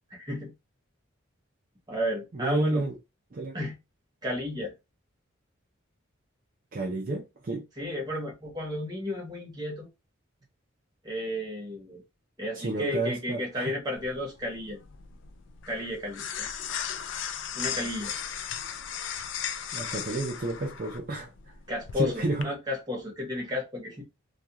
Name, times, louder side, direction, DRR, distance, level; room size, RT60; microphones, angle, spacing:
voice 1, 0.1-0.5 1.9-2.8 3.5-3.8 4.2-4.7 7.8-9.9 11.0-12.0 12.4-14.8 15.7-16.5 17.6-18.1 21.7-24.0, left 1 dB, 20° right, 0.8 m, -33 dB
voice 2, 2.3-3.0 3.3-3.6 6.7-7.6 12.6-13.7 19.7-21.3 22.0-22.5, right 2 dB, 40° right, 0.4 m, -31 dB
sound 1, 14.0-22.4, left 8 dB, 65° left, 0.3 m, -37 dB
2.3 x 2.3 x 2.8 m
head